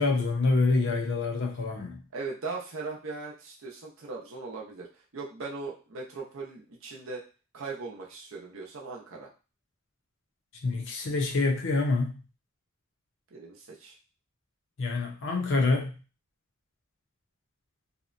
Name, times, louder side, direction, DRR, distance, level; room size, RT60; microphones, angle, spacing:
voice 1, 0.0-2.0 10.6-12.2 14.8-16.0, left 3 dB, 65° left, 2 dB, 0.6 m, -26 dB
voice 2, 2.1-4.9 5.1-7.2 7.5-9.3 13.3-14.0, right 3 dB, 70° right, -2 dB, 0.6 m, -39 dB
2.8 x 2.1 x 2.5 m, 0.34 s
head